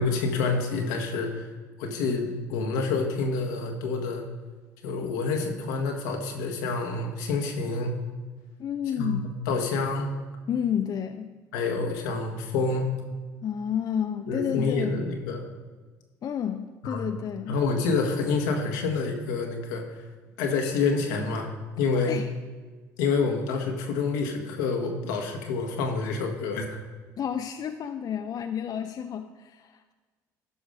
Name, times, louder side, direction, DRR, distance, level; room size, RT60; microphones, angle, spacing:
voice 1, 0.0-1.5 1.8-4.2 4.8-7.9 9.0-10.2 11.5-12.9 14.3-15.4 16.8-17.1 17.5-20.0 20.4-21.5 21.8-22.2 23.0-26.8, left 4 dB, 80° left, 3 dB, 1.4 m, -28 dB
voice 2, 8.6-9.3 10.5-11.3 13.4-15.0 16.2-17.6 21.9-22.3 27.2-29.9, left 8 dB, 45° left, 7 dB, 0.5 m, -30 dB
12.5 x 5.1 x 4.9 m, 1.4 s
hypercardioid pair, 65°, 9 cm